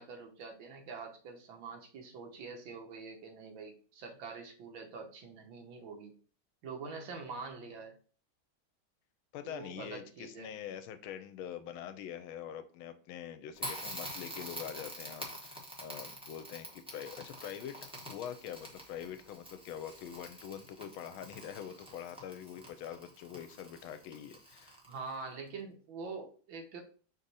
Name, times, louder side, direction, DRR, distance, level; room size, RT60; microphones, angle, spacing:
voice 1, 0.0-6.1 6.6-7.9 9.4-10.5 24.9-26.8, right 4 dB, 70° right, 3 dB, 1.6 m, -45 dB
voice 2, 9.3-24.8, left 9 dB, 85° left, 10 dB, 1.4 m, -44 dB
Crackle, 13.6-25.1, equal, 5° right, 0.5 m, -46 dB
4.9 x 2.7 x 4.0 m, 0.41 s
omnidirectional pair, 2.2 m